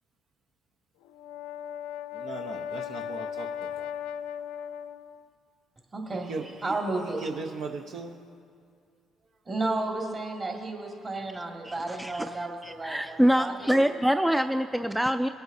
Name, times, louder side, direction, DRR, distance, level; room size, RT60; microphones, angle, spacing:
Brass instrument, 1.0-5.3, left 9 dB, 90° left, 0.3 m, -37 dB
voice 1, 2.1-3.9 6.1-6.7 7.0-8.2, right 4 dB, 70° right, 3 dB, 0.7 m, -38 dB
voice 2, 5.9-6.3 6.6-7.3 9.5-14.0, right 2 dB, 35° right, 0 dB, 2.1 m, -33 dB
voice 3, 11.7-12.3 12.6-15.3, equal, 5° right, 8 dB, 0.3 m, -25 dB
21.0 x 7.9 x 2.7 m, 2.3 s
supercardioid pair, 65°, 0 cm